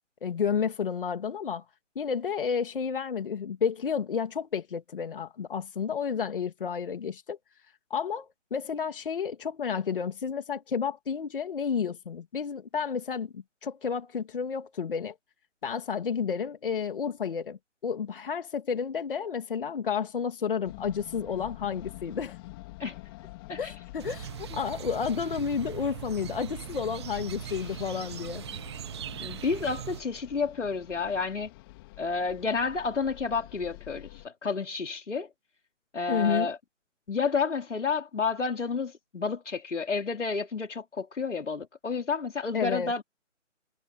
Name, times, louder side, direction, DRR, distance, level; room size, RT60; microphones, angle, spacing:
voice 1, 0.2-1.6 1.9-7.4 7.9-15.1 15.6-22.4 23.6-28.4 36.1-36.5 42.5-42.9, left 6 dB, 45° left, 2.8 m, -31 dB
sound 1, 20.6-34.3, left 21 dB, 20° left, 3.7 m, -47 dB
sound 2, 24.0-30.0, right 10 dB, 20° right, 1.4 m, -40 dB
voice 2, 29.2-31.5 32.0-35.3 35.9-36.6 37.1-43.0, left 4 dB, 70° left, 3.9 m, -30 dB
figure-of-eight pair, 160°, 37 cm